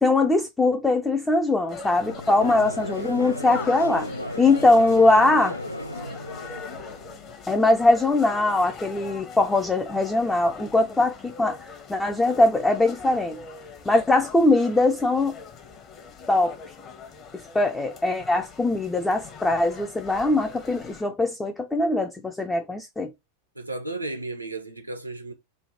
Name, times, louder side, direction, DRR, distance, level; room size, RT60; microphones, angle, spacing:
voice 1, 0.0-4.1 4.4-5.5 7.5-13.4 13.9-15.4 16.3-16.5 17.5-23.1, left 2 dB, 10° left, 0.4 m, -21 dB
sound 1, 1.7-21.0, left 5 dB, 30° left, 0.9 m, -42 dB
Conversation / Crowd, 2.0-7.3, left 1 dB, 85° left, 0.3 m, -35 dB
voice 2, 2.4-3.0 23.6-25.3, right 2 dB, 90° right, 0.8 m, -35 dB
3.3 x 2.3 x 4.0 m
figure-of-eight pair, 90°, 0 cm